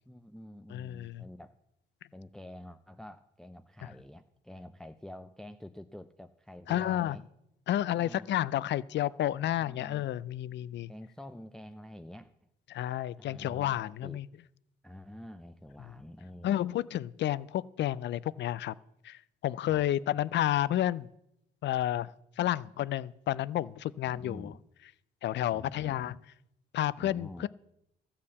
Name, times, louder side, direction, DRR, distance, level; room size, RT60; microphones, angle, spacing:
voice 1, 0.1-1.5 2.1-7.2 7.9-8.3 9.6-10.1 10.9-12.3 13.2-14.2 14.8-16.7 19.7-19.9 24.0-24.6 25.5-26.2 27.0-27.5, left 1 dB, ahead, 0.4 m, -48 dB
voice 2, 0.7-1.2 6.7-7.2 7.7-10.9 12.7-14.3 16.4-18.7 19.0-21.1 21.6-22.1 22.4-24.5 25.2-26.2 26.7-27.5, left 12 dB, 65° left, 0.4 m, -31 dB
13.5 x 5.7 x 8.0 m
cardioid pair, 90°, 20 cm